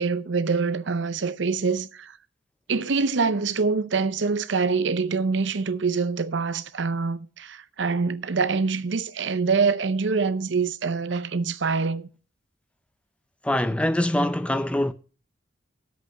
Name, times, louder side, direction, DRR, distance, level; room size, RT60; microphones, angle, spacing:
voice 1, 0.0-2.1 2.7-12.1, right 4 dB, 75° right, 0.6 m, -25 dB
voice 2, 13.4-14.9, left 1 dB, 5° left, 0.4 m, -23 dB
8.6 x 8.0 x 5.0 m
head